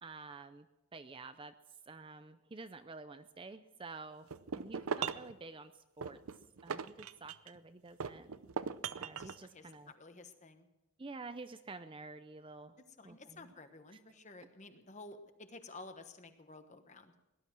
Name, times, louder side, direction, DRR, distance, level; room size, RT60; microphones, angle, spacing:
voice 1, 0.0-0.7 0.9-1.5 1.9-6.2 6.6-8.3 9.0-9.9 11.0-12.8 13.0-13.5 13.9-14.0, right 3 dB, 25° right, 11 dB, 0.5 m, -50 dB
sound 1, 4.3-5.3 6.0-7.6 8.0-9.4, right 6 dB, 75° right, 0.6 m, -39 dB
voice 2, 9.2-10.7 13.0-17.1, left 3 dB, 35° left, 8 dB, 1.2 m, -53 dB
18.5 x 12.0 x 6.1 m, 0.99 s
head